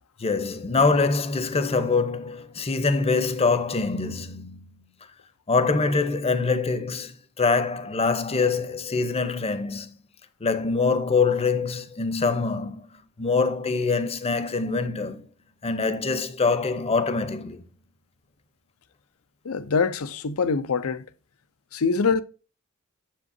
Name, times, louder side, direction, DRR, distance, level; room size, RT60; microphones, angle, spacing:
voice 1, 0.2-4.9 5.5-9.9 10.4-15.3 15.6-17.6, left 4 dB, 30° left, 0.7 m, -24 dB
voice 2, 19.4-21.0 21.7-22.2, left 5 dB, 80° left, 0.6 m, -24 dB
7.4 x 7.4 x 2.7 m
head